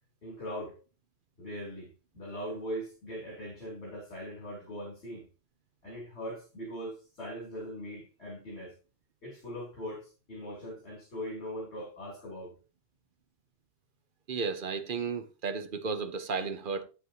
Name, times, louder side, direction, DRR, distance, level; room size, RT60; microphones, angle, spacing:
voice 1, 0.2-0.8 1.4-5.3 5.8-8.7 9.2-12.5, equal, 70° left, 3.5 m, -40 dB
voice 2, 14.3-16.8, right 5 dB, 55° right, 0.9 m, -33 dB
9.1 x 8.4 x 2.8 m
omnidirectional pair, 1.1 m